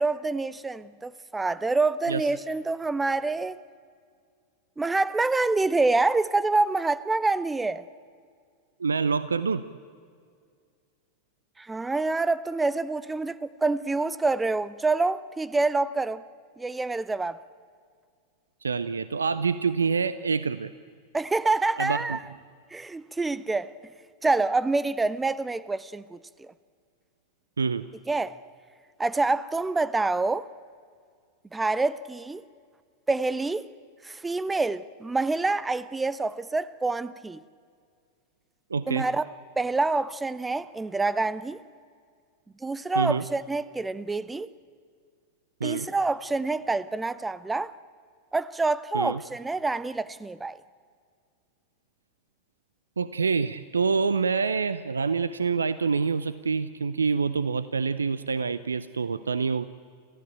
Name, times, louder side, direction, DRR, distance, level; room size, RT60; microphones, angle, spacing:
voice 1, 0.0-3.6 4.8-7.8 11.6-16.2 16.6-17.4 21.1-22.2 22.7-23.7 24.2-26.5 28.1-28.3 29.0-30.5 31.5-32.4 33.1-33.7 34.0-37.4 38.9-39.2 39.6-41.6 42.6-44.5 45.6-47.7 48.3-50.6, right 3 dB, 10° right, 0.7 m, -27 dB
voice 2, 8.8-9.6 18.6-20.7 21.8-22.2 27.6-27.8 38.7-39.1 43.0-43.2 45.6-45.9 48.9-49.2 53.0-59.6, right 5 dB, 75° right, 0.6 m, -26 dB
28.0 x 15.0 x 9.0 m
figure-of-eight pair, 90°, 0 cm